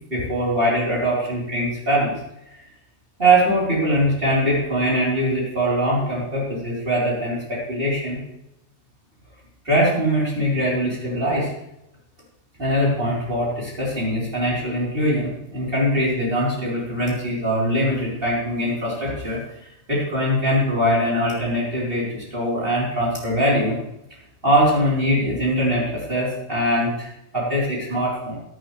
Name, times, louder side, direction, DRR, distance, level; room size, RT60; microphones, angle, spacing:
voice 1, 0.1-2.1 3.2-8.2 9.6-11.5 12.6-23.7 24.4-27.1 27.3-28.3, equal, 40° right, -6 dB, 4.1 m, -22 dB
17.0 x 11.0 x 3.3 m, 0.84 s
omnidirectional pair, 1.5 m